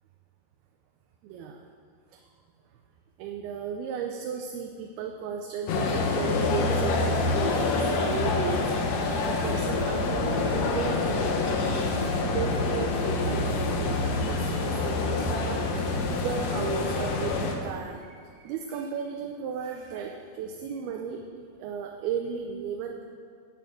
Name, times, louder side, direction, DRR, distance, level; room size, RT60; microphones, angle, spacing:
voice 1, 1.2-1.7 2.1-2.2 3.2-11.4 12.2-21.2 21.6-23.1, right 6 dB, 80° right, 2 dB, 2.6 m, -35 dB
sound 1, 5.7-17.5, left 3 dB, 85° left, 1.4 m, -26 dB
13.0 x 5.4 x 7.5 m, 2.2 s
omnidirectional pair, 4.5 m